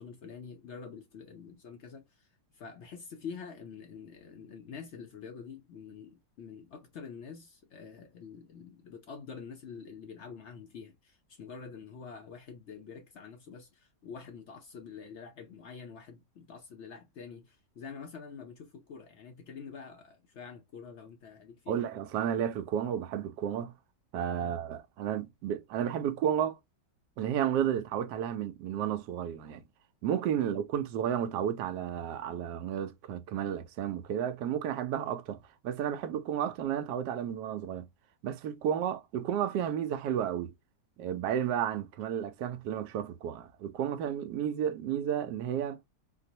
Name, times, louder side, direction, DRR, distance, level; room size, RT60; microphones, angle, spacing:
voice 1, 0.0-22.0 24.4-24.6 30.4-30.6, left 6 dB, 65° left, 0.7 m, -47 dB
voice 2, 21.7-23.7 24.1-26.6 27.2-29.6 30.0-35.4 35.6-37.9 38.2-40.5 41.0-45.8, right 9 dB, 80° right, 1.2 m, -32 dB
4.5 x 2.0 x 2.7 m
omnidirectional pair, 1.8 m